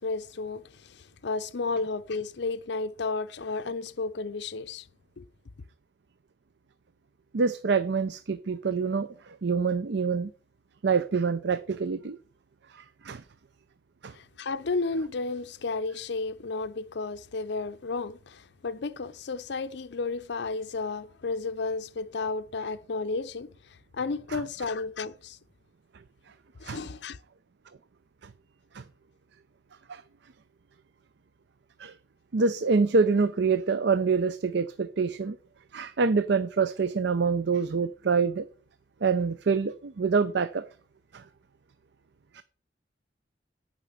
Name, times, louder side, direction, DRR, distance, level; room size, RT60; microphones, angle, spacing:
voice 1, 0.0-4.9 5.2-5.3 14.1-23.5 23.9-25.4 26.6-27.2, left 3 dB, 70° left, 0.6 m, -32 dB
voice 2, 7.3-10.3 10.8-12.2 12.7-13.2 14.0-14.1 24.3-24.4 26.6-26.8 28.7-28.8 29.9-30.0 31.8-31.9 32.3-35.4 35.7-38.5 39.0-40.6 41.1-41.2 42.3-42.4, right 5 dB, 65° right, 0.5 m, -26 dB
10.0 x 5.3 x 7.4 m
head